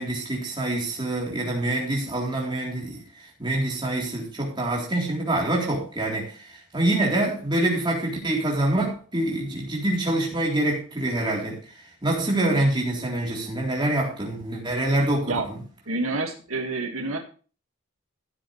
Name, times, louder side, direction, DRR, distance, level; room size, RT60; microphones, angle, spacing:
voice 1, 0.0-15.6, right 1 dB, 20° right, 3.8 m, -26 dB
voice 2, 15.9-17.2, right 3 dB, 85° right, 1.9 m, -28 dB
15.0 x 8.2 x 3.3 m
head